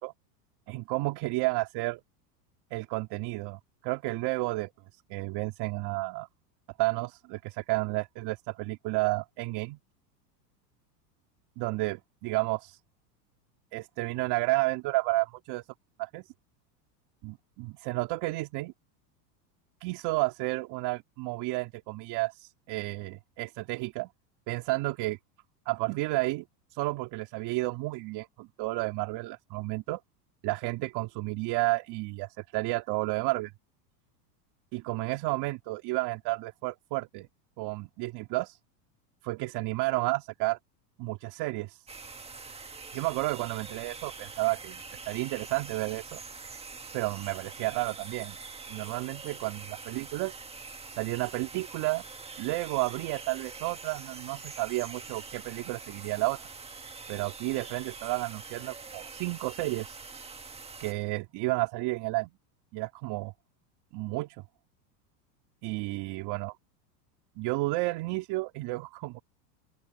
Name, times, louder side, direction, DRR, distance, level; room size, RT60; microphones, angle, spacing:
voice 1, 0.7-2.0 2.7-4.7 5.1-6.3 6.8-9.8 11.6-12.8 13.7-15.6 16.0-16.3 17.2-18.7 19.8-24.1 24.5-25.2 25.6-26.4 26.7-30.0 30.4-33.5 34.7-37.3 37.6-38.6 39.2-40.6 41.0-41.8 42.9-46.2 46.9-48.4 48.7-50.4 51.0-52.0 52.4-56.5 57.1-60.0 60.8-62.3 62.7-63.3 63.9-64.4 65.6-66.5 67.4-69.2, right 21 dB, 50° right, 3.4 m, -31 dB
sound 1, 41.9-60.9, right 4 dB, 10° right, 1.8 m, -44 dB
open air
supercardioid pair, 120°, 50 cm